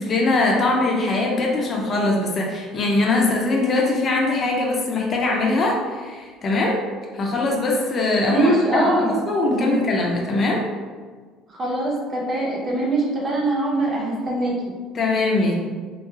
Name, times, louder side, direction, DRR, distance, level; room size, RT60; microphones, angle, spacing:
voice 1, 0.0-6.8 7.1-10.6 14.9-15.5, left 2 dB, 40° left, -1 dB, 0.7 m, -21 dB
voice 2, 8.3-9.2 9.5-10.0 11.5-14.5, right 2 dB, 35° right, -4 dB, 1.0 m, -22 dB
3.7 x 2.3 x 3.0 m, 1.5 s
cardioid pair, 115°, 0 cm